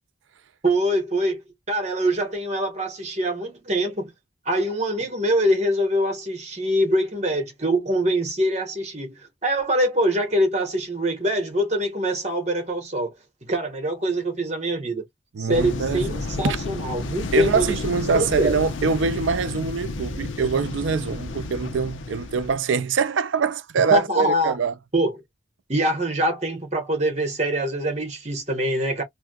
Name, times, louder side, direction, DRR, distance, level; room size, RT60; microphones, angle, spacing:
voice 1, 0.6-1.4 1.7-4.1 4.4-13.1 13.4-15.0 15.4-18.6 23.9-24.6 24.9-25.2 25.7-29.0, right 1 dB, 35° right, 1.3 m, -24 dB
voice 2, 15.3-16.6 17.3-24.7, right 5 dB, 90° right, 0.4 m, -24 dB
sound 1, 15.5-22.6, left 3 dB, 90° left, 0.6 m, -31 dB
3.4 x 2.7 x 2.3 m
head